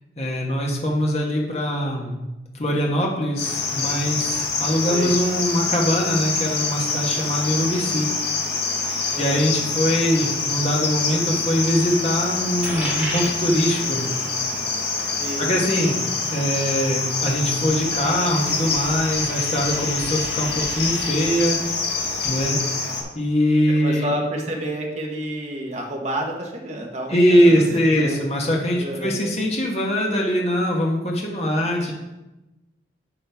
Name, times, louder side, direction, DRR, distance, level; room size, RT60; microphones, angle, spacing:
voice 1, 0.2-2.2 2.6-8.1 9.2-14.1 15.4-16.0 16.3-21.6 22.2-22.6 23.1-24.1 27.1-31.9, equal, 35° left, -1 dB, 1.3 m, -22 dB
Cricket, 3.4-23.0, left 4 dB, 65° left, 1.4 m, -26 dB
Coin (dropping), 12.6-21.1, equal, 5° right, 3.1 m, -37 dB
voice 2, 15.2-15.5 23.8-28.2 28.8-29.2, right 1 dB, 40° right, 0 dB, 1.1 m, -29 dB
9.9 x 5.5 x 3.5 m, 1.0 s
head